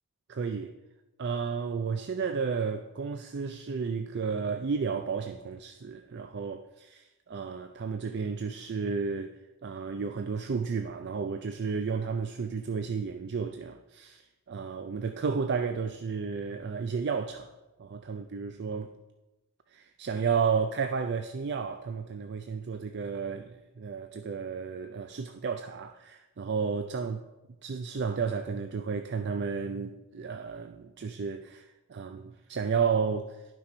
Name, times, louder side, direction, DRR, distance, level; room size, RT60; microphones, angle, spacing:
voice 1, 0.3-0.7 1.2-9.3 9.6-17.5 17.8-19.0 19.7-27.2 27.6-33.6, right 5 dB, 50° right, 0.4 m, -32 dB
11.0 x 6.1 x 4.3 m
head